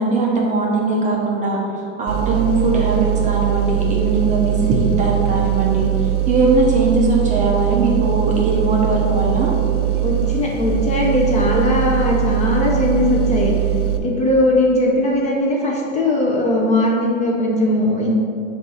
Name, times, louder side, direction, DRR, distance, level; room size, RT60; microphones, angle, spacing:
voice 1, 0.0-1.6 2.0-5.9 6.3-9.5, right 2 dB, 20° right, -2 dB, 0.7 m, -19 dB
sound 1, 2.1-14.0, right 13 dB, 75° right, 0.8 m, -21 dB
voice 2, 10.0-13.5 14.0-18.1, left 1 dB, 20° left, -2 dB, 0.7 m, -19 dB
6.8 x 2.7 x 5.5 m, 2.6 s
supercardioid pair, 145°, 38 cm